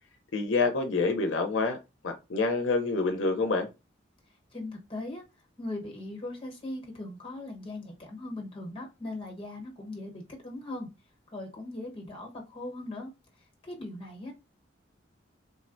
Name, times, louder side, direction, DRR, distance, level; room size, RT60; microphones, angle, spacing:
voice 1, 0.3-1.8 2.0-3.7, left 3 dB, 85° left, 0.6 m, -27 dB
voice 2, 4.5-5.2 5.6-10.9 11.3-13.1 13.6-14.3, left 2 dB, 30° left, 1.0 m, -39 dB
3.6 x 2.1 x 2.5 m
head